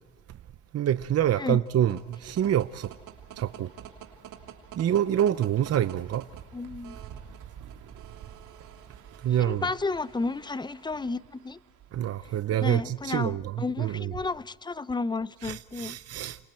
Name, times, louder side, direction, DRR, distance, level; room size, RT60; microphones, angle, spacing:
voice 1, 0.7-2.9 3.4-3.7 4.8-6.2 9.2-9.7 11.9-14.1 15.4-16.4, right 11 dB, 55° right, 0.7 m, -26 dB
sound 1, 1.6-12.3, right 8 dB, 85° right, 3.1 m, -48 dB
voice 2, 6.5-7.0 9.4-11.6 12.6-16.0, left 3 dB, 15° left, 0.7 m, -32 dB
29.0 x 28.0 x 4.5 m
cardioid pair, 90°, 30 cm